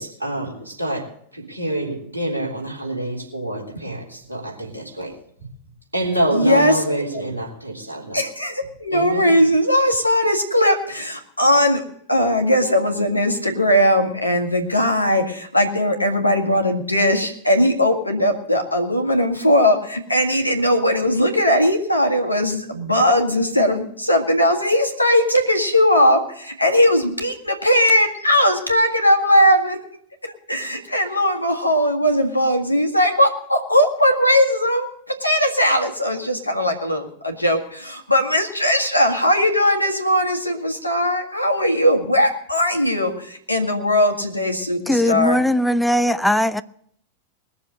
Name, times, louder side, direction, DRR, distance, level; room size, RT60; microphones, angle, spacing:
voice 1, 0.0-5.2 5.9-8.2 8.9-9.3, right 1 dB, 85° right, 3.5 m, -27 dB
voice 2, 6.3-6.7 8.1-11.8 12.1-29.8 30.2-34.9 35.2-45.4, equal, 85° left, 1.9 m, -19 dB
voice 3, 44.9-46.6, left 1 dB, 5° left, 0.6 m, -19 dB
20.5 x 7.0 x 6.6 m
figure-of-eight pair, 90°, 0 cm